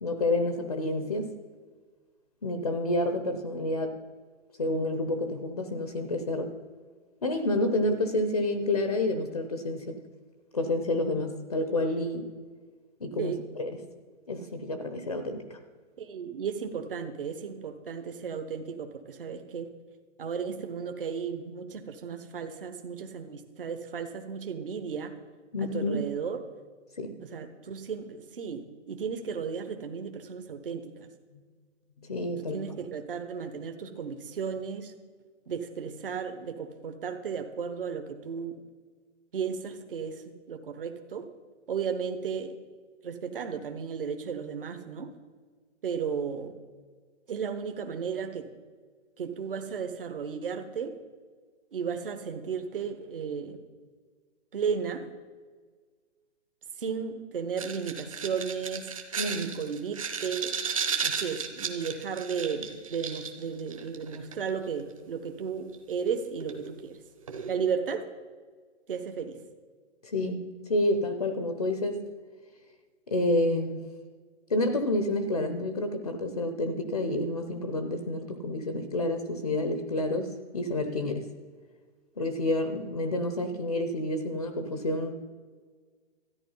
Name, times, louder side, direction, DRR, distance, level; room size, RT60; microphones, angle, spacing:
voice 1, 0.0-1.3 2.4-4.0 4.6-6.5 7.2-10.0 10.5-12.3 13.0-13.3 13.6-13.8 14.3-15.6 25.5-26.0 27.0-27.2 32.1-32.6 59.2-59.5 70.0-70.4 70.7-72.0 73.1-73.8 74.5-81.3 82.2-85.1, left 1 dB, 30° left, 8 dB, 0.7 m, -29 dB
voice 2, 16.0-19.7 20.2-25.1 25.6-26.4 27.2-31.1 32.5-34.9 35.5-38.6 39.3-41.3 41.7-42.5 43.0-45.1 45.8-46.5 47.3-48.4 49.2-50.9 51.7-53.6 54.5-55.1 56.8-58.9 59.3-60.5 61.0-67.0 67.5-68.0 68.9-69.4, right 6 dB, 50° right, 7 dB, 1.1 m, -34 dB
sound 1, 57.6-64.5 65.7-65.8 66.4-66.7 67.3-67.5, right 6 dB, 30° right, 0.9 m, -34 dB
13.5 x 10.0 x 5.5 m, 1.5 s
hypercardioid pair, 180°, 36 cm